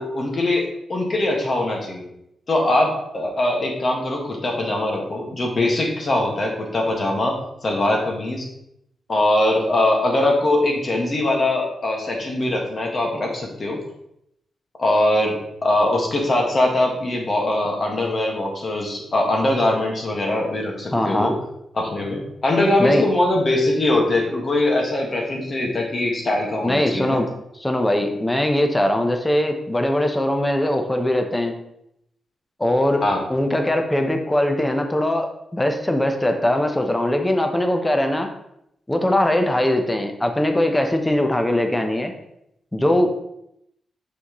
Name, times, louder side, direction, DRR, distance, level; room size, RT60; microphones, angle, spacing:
voice 1, 0.0-2.0 2.5-7.3 7.6-8.5 9.1-13.8 14.8-21.3 21.7-27.2 33.0-33.2, left 1 dB, 45° left, 0 dB, 1.6 m, -21 dB
voice 2, 20.9-21.3 22.8-23.1 26.6-27.3 27.6-31.5 32.6-33.0 33.3-38.3 38.9-42.1 42.7-43.1, left 1 dB, 15° left, 5 dB, 0.8 m, -21 dB
6.1 x 5.5 x 3.1 m, 0.79 s
cardioid pair, 80°, 0 cm